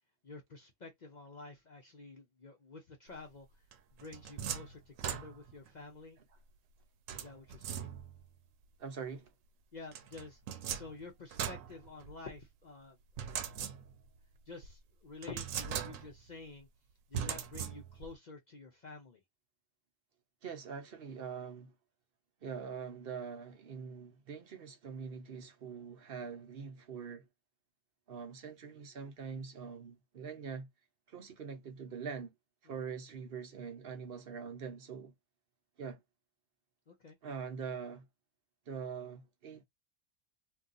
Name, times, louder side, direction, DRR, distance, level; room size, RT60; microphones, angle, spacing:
voice 1, 0.2-3.6 3.9-6.2 7.1-7.9 9.7-10.4 10.7-13.5 14.5-16.7 17.1-19.2 32.7-32.8 36.9-37.2, left 3 dB, 45° left, 0.6 m, -50 dB
sound 1, 3.7-5.7 7.1-8.3 9.9-12.4 13.2-14.2 14.6-14.7 15.2-16.3 17.1-18.1, right 8 dB, 90° right, 1.0 m, -40 dB
voice 2, 8.8-9.3 20.4-21.7 22.4-27.3 28.1-30.7 31.1-32.3 32.6-35.1 35.8-36.0 37.2-38.0 38.7-39.6, right 6 dB, 55° right, 0.8 m, -43 dB
2.8 x 2.3 x 3.7 m
omnidirectional pair, 1.3 m